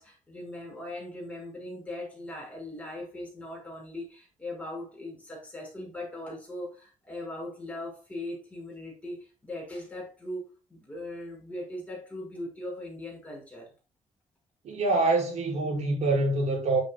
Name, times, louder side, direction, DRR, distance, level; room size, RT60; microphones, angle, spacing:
voice 1, 0.0-13.7, left 1 dB, 10° left, 5.6 m, -39 dB
voice 2, 14.6-16.8, right 2 dB, 65° right, 5.9 m, -25 dB
10.5 x 9.6 x 2.3 m
cardioid pair, 170°, 13 cm